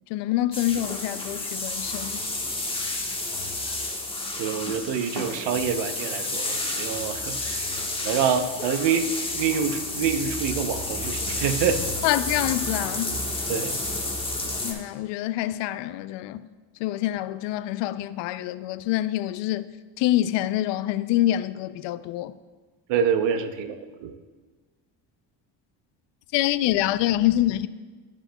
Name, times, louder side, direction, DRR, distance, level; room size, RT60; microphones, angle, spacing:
voice 1, 0.1-2.2 12.0-13.1 14.6-16.4 16.8-19.7 20.0-22.3 26.3-27.7, left 14 dB, 70° left, 0.5 m, -26 dB
sound 1, 0.5-14.7, left 2 dB, 10° left, 1.3 m, -30 dB
voice 2, 4.4-7.6 8.0-9.1 9.3-11.8 13.5-13.8 22.9-24.1, right 7 dB, 65° right, 0.9 m, -26 dB
13.5 x 5.2 x 2.2 m
supercardioid pair, 85°, 46 cm